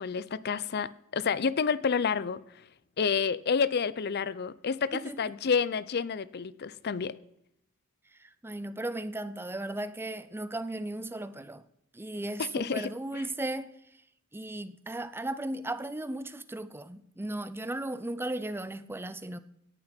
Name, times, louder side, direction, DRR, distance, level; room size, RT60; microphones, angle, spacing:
voice 1, 0.0-2.4 3.0-7.1 12.4-13.3, left 6 dB, 50° left, 0.5 m, -29 dB
voice 2, 8.2-11.6 11.9-13.7 14.3-19.4, right 1 dB, 10° right, 0.5 m, -36 dB
17.5 x 11.0 x 4.4 m
head